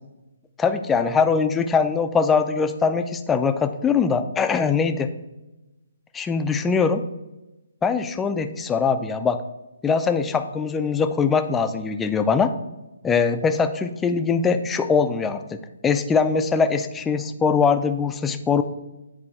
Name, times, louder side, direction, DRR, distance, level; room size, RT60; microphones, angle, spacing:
voice 1, 0.6-5.1 6.1-7.0 7.8-9.4 9.8-12.5 13.0-15.6 15.8-18.6, left 5 dB, 10° left, 8 dB, 0.3 m, -22 dB
9.9 x 3.6 x 3.0 m, 1.0 s
hypercardioid pair, 160°, 0 cm